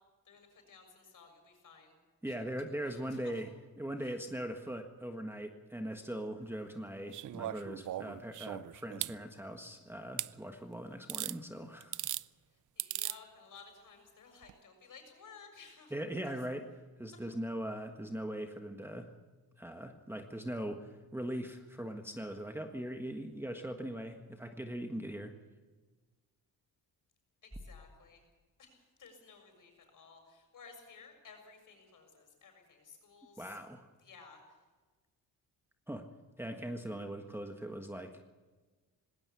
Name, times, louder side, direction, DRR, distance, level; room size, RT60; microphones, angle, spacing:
voice 1, 0.3-2.0 2.2-2.4 2.9-3.3 4.0-4.2 12.5-15.9 27.4-28.2 28.6-33.6 34.0-34.4, left 5 dB, 55° left, 5 dB, 6.9 m, -56 dB
voice 2, 2.2-3.5 3.8-12.0 15.9-16.7 17.0-19.1 19.6-25.3 33.4-33.9 35.9-36.1 36.4-38.2, right 1 dB, 5° right, 4 dB, 1.5 m, -40 dB
sound 1, 7.1-9.2 10.2-10.3 11.1-11.4 11.8-12.2 12.8-13.2 14.4-14.5, right 13 dB, 55° right, 0.5 m, -38 dB
19.5 x 17.5 x 8.5 m, 1.3 s
cardioid pair, 105°, 38 cm